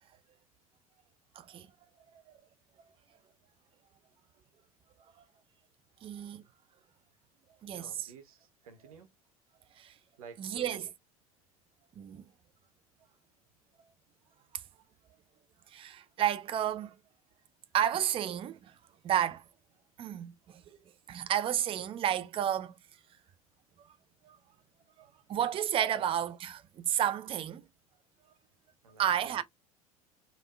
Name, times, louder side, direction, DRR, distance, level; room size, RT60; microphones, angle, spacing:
voice 1, 1.4-1.7 2.3-2.4 6.0-6.4 7.6-8.1 9.8-9.9 10.4-10.9 12.0-12.2 15.7-17.0 17.7-18.7 19.0-19.4 20.0-20.6 21.1-22.7 24.2-24.4 25.0-27.6 29.0-29.4, right 10 dB, 30° right, 0.4 m, -31 dB
voice 2, 7.7-9.1 10.2-10.8 25.9-26.0 28.8-29.4, right 4 dB, 70° right, 0.8 m, -51 dB
3.4 x 2.3 x 2.2 m
figure-of-eight pair, 70°, 19 cm